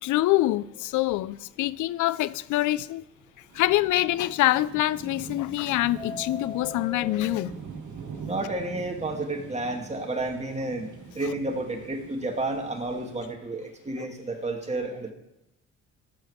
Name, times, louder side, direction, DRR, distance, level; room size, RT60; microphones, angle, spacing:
voice 1, 0.0-3.0 3.5-7.5 11.2-11.3, left 16 dB, 80° left, 0.5 m, -25 dB
Subway metro underground, 0.5-0.9 1.3-1.4 1.7-1.8 2.3-2.4 4.9-5.5 5.8-7.5, left 4 dB, 15° left, 0.7 m, -40 dB
sound 1, 3.5-13.3, right 5 dB, 75° right, 1.4 m, -43 dB
voice 2, 8.2-15.1, right 2 dB, 20° right, 2.3 m, -31 dB
13.0 x 7.6 x 5.0 m
cardioid pair, 90°, 30 cm